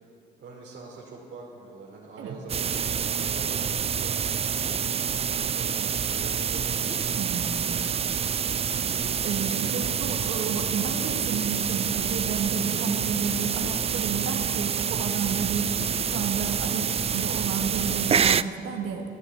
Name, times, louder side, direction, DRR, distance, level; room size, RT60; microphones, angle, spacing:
voice 1, 0.4-4.5 5.4-7.0, right 3 dB, 70° right, -5 dB, 2.9 m, -44 dB
sound 1, 2.5-18.4, right 7 dB, 30° right, 0.4 m, -27 dB
sound 2, 4.4-5.1 6.7-7.4 8.8-9.5 11.1-11.8 13.4-14.1 15.7-16.4, left 2 dB, 35° left, 1.8 m, -45 dB
voice 2, 7.2-7.5 9.2-15.7 16.0-19.1, right 6 dB, 90° right, 3 dB, 1.8 m, -31 dB
14.5 x 10.0 x 8.7 m, 2.5 s
cardioid pair, 90°, 20 cm